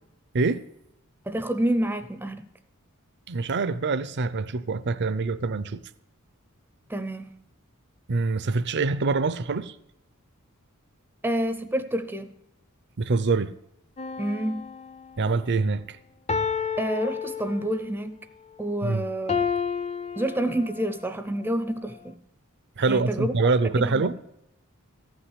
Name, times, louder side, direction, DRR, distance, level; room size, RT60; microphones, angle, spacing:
voice 1, 1.3-2.4 6.9-7.3 11.2-12.3 14.2-14.7 16.8-18.2 18.6-19.4 20.2-22.2 22.9-23.3 23.8-24.2, right 1 dB, 10° right, 0.6 m, -28 dB
voice 2, 3.3-5.8 8.1-9.7 13.0-13.5 15.2-16.0 18.8-19.0 22.8-24.2, right 3 dB, 55° right, 0.6 m, -25 dB
sound 1, 14.0-15.3 16.3-18.0 19.3-21.0 21.6-21.8, left 6 dB, 30° left, 0.6 m, -30 dB
14.5 x 6.1 x 9.8 m
head